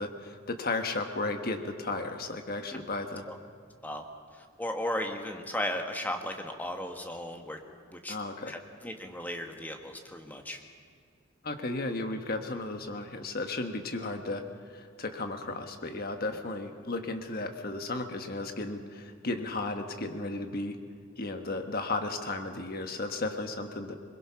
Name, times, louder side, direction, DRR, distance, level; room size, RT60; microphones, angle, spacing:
voice 1, 0.0-3.2 8.1-8.5 11.4-14.4 14.7-20.8 21.2-23.9, left 2 dB, 45° left, 6 dB, 1.4 m, -34 dB
voice 2, 4.4-7.6 7.9-8.1 8.5-10.6, left 1 dB, 10° left, 4 dB, 1.3 m, -36 dB
22.0 x 21.0 x 5.8 m, 2.1 s
head